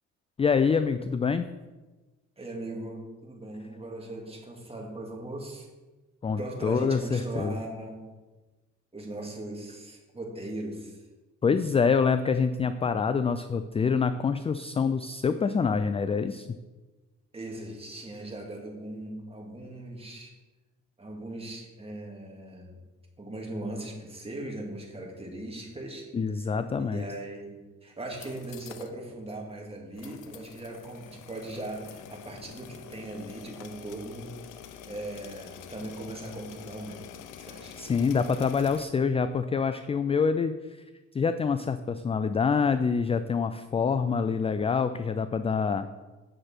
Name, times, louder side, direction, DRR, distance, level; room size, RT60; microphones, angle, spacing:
voice 1, 0.4-1.5 6.2-7.6 11.4-16.5 26.1-27.0 37.8-40.8 41.1-45.9, left 5 dB, 20° left, 11 dB, 0.3 m, -26 dB
voice 2, 2.4-5.7 6.4-8.0 8.9-11.0 17.3-20.3 21.0-22.8 23.2-26.1 26.9-34.4 34.9-37.1 37.4-37.8, right 1 dB, 20° right, -1 dB, 2.2 m, -39 dB
sound 1, 28.0-28.9 29.3-29.4 30.0-38.8, left 9 dB, 85° left, 0.7 m, -46 dB
8.7 x 6.4 x 4.4 m, 1.2 s
cardioid pair, 90°, 30 cm